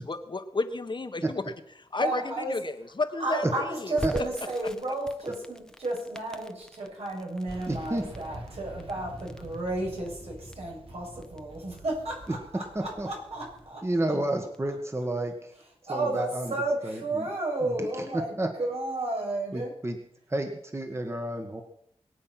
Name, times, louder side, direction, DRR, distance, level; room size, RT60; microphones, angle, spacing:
voice 1, 0.1-1.4 1.9-3.4, left 3 dB, 50° left, 8 dB, 1.3 m, -31 dB
voice 2, 2.0-2.6 3.2-14.1 15.8-19.7, right 2 dB, 80° right, -2 dB, 7.6 m, -32 dB
Crackle, 4.0-14.7, left 1 dB, 5° left, 1.0 m, -44 dB
sound 1, 7.5-13.7, right 1 dB, 60° right, 3.9 m, -46 dB
voice 3, 7.7-8.0 12.8-13.1 13.8-15.5 15.9-16.5 16.8-17.3 17.6-18.5 19.5-20.0 20.3-21.6, right 1 dB, 25° right, 4 dB, 1.7 m, -30 dB
22.5 x 8.8 x 5.9 m, 0.70 s
wide cardioid pair, 80°, 11 cm